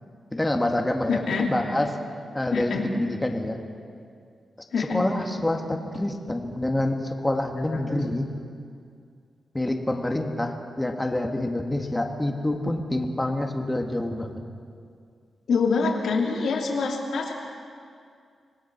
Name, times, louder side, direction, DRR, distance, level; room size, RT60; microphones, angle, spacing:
voice 1, 0.3-1.2 1.5-1.9 2.3-3.6 4.8-8.3 9.5-14.4, left 1 dB, 15° left, 3 dB, 2.0 m, -27 dB
voice 2, 1.1-1.5 2.5-2.8 4.7-5.0 7.7-7.8 15.5-17.3, left 4 dB, 80° left, 0 dB, 2.9 m, -25 dB
26.0 x 19.0 x 6.1 m, 2.3 s
cardioid pair, 95°, 0 cm